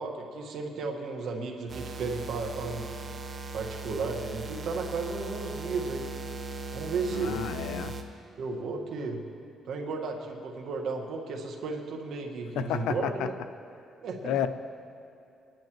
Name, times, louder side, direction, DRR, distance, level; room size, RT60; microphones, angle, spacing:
voice 1, 0.0-2.8 3.5-6.1 6.7-7.4 8.4-9.3 9.6-13.3 14.0-14.4, right 4 dB, 75° right, 2 dB, 1.5 m, -34 dB
sound 1, 1.7-8.0, right 3 dB, 40° right, 1.1 m, -38 dB
voice 2, 7.1-7.9 12.6-13.3 14.2-14.5, left 9 dB, 90° left, 10 dB, 0.5 m, -30 dB
21.5 x 10.5 x 3.0 m, 2.6 s
cardioid pair, 90°, 0 cm